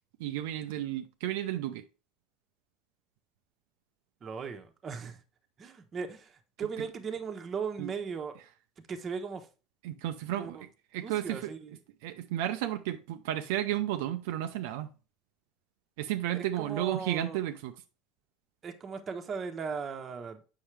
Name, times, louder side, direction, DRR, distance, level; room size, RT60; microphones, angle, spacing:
voice 1, 0.2-1.8 7.8-7.9 9.8-10.6 10.9-11.5 12.0-14.9 16.0-17.7, right 13 dB, 80° right, 0.5 m, -32 dB
voice 2, 4.2-5.2 5.6-8.4 8.9-9.5 10.4-10.6 11.0-11.8 16.3-17.4 18.6-20.4, right 5 dB, 30° right, 1.0 m, -38 dB
7.2 x 5.7 x 3.3 m
supercardioid pair, 125°, 0 cm